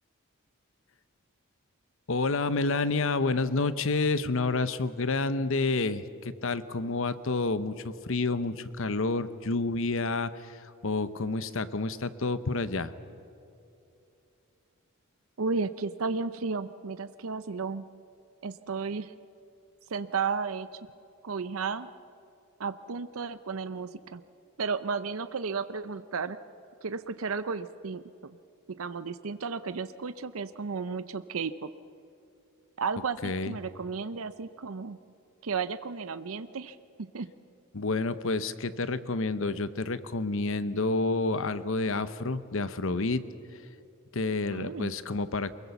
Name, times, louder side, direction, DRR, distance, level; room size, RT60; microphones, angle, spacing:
voice 1, 2.1-12.9 33.2-33.5 37.7-43.2 44.1-45.5, left 3 dB, 65° left, 13 dB, 0.9 m, -29 dB
voice 2, 15.4-17.8 18.4-19.1 19.9-20.7 21.2-21.9 22.6-24.2 24.6-26.4 26.8-28.0 28.7-31.7 32.8-35.0 35.4-37.3 44.5-44.9, right 5 dB, 75° right, 13 dB, 0.6 m, -33 dB
24.0 x 22.0 x 7.1 m, 2.7 s
head